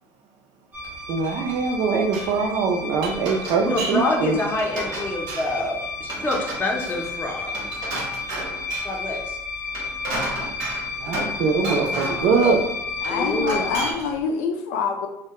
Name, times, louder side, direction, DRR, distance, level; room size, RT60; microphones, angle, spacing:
sound 1, 0.7-13.9, left 4 dB, 20° right, 0.6 m, -32 dB
Glass, 0.8-1.7 2.0-2.3 2.8-4.1 4.4-5.6 6.0-9.0 9.6-11.4 11.6-12.6 13.0-14.2, right 2 dB, 80° right, 0.8 m, -32 dB
voice 1, 1.1-4.4 11.0-12.6, right 4 dB, 65° right, 3 dB, 0.4 m, -22 dB
voice 2, 3.6-7.5 8.8-9.4 13.1-13.7, left 2 dB, 20° left, -1 dB, 0.6 m, -26 dB
voice 3, 13.0-15.1, left 5 dB, 85° left, 4 dB, 0.4 m, -26 dB
2.2 x 2.1 x 2.8 m, 0.83 s
supercardioid pair, 90°, 8 cm